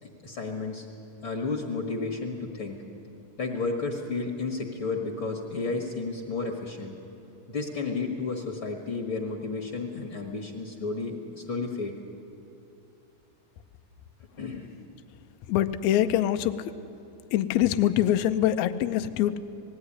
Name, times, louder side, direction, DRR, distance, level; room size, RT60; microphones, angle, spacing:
voice 1, 0.0-0.9 1.2-2.8 3.4-6.9 7.5-11.9 14.4-14.7, left 3 dB, 45° left, 2 dB, 1.9 m, -32 dB
voice 2, 15.5-16.8 17.3-19.4, left 12 dB, 75° left, 9 dB, 1.8 m, -24 dB
19.5 x 16.0 x 9.9 m, 2.9 s
omnidirectional pair, 3.8 m